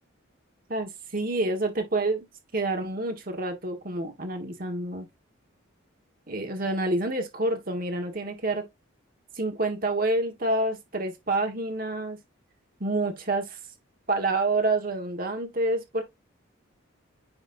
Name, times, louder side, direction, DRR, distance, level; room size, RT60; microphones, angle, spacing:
voice 1, 0.7-2.3 2.5-5.0 6.3-8.7 9.3-12.2 12.8-13.6 14.1-16.0, right 2 dB, 45° right, 1.5 m, -28 dB
9.5 x 4.1 x 2.6 m
head